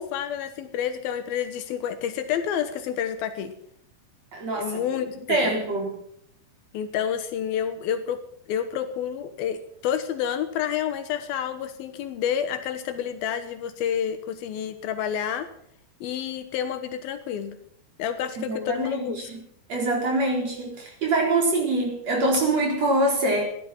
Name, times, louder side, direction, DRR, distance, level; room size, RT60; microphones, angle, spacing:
voice 1, 0.0-3.5 4.6-5.5 6.7-8.2 8.5-15.5 16.0-17.6 18.0-19.3, left 9 dB, 75° left, 10 dB, 2.7 m, -29 dB
voice 2, 4.3-4.8 5.3-6.0 18.4-19.4 19.7-23.5, right 2 dB, 40° right, 0 dB, 5.1 m, -24 dB
16.0 x 11.5 x 7.4 m, 0.70 s
omnidirectional pair, 4.6 m